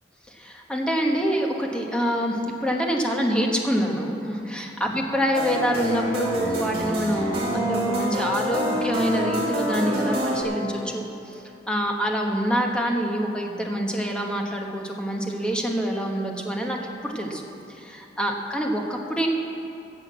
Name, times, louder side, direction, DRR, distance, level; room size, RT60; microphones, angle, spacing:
voice 1, 0.3-11.0 11.7-17.4 17.8-19.3, equal, 5° left, 0 dB, 1.3 m, -26 dB
sound 1, 5.3-10.4, right 1 dB, 35° right, 2.5 m, -26 dB
14.0 x 7.6 x 7.4 m, 2.9 s
head